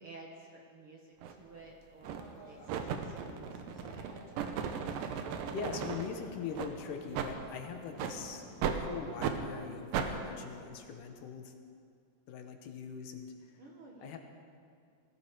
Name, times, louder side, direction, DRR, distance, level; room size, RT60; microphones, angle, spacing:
voice 1, 0.0-4.6 13.6-14.2, right 2 dB, 50° right, -1 dB, 1.9 m, -53 dB
sound 1, 1.2-1.4 2.0-2.3 2.7-6.1 6.5-6.7 7.1-7.3 8.0-8.2 8.6-8.8 9.2-9.4 9.9-10.1, right 7 dB, 85° right, 2.6 m, -36 dB
sound 2, 2.1-9.5, left 1 dB, 45° left, 4.1 m, -54 dB
voice 2, 4.9-8.4 8.7-11.5 12.3-13.6 14.0-14.2, left 6 dB, 75° left, 5 dB, 2.6 m, -42 dB
19.5 x 15.5 x 4.8 m, 2.3 s
omnidirectional pair, 3.9 m